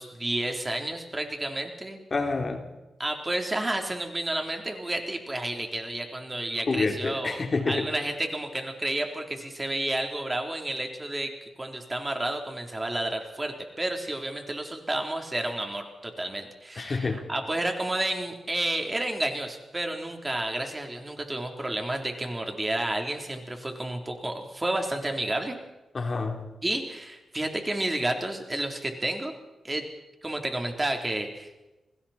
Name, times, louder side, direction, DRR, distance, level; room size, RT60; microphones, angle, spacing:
voice 1, 0.0-2.0 3.0-7.4 7.7-11.3 11.6-25.5 26.6-29.3 29.6-29.9 30.2-31.5, right 1 dB, 20° right, 3 dB, 3.7 m, -31 dB
voice 2, 2.1-2.7 6.7-7.9 16.8-17.3 25.9-26.5, left 3 dB, 45° left, 4 dB, 3.6 m, -28 dB
29.0 x 20.5 x 4.4 m, 1.0 s
cardioid pair, 80°, 0 cm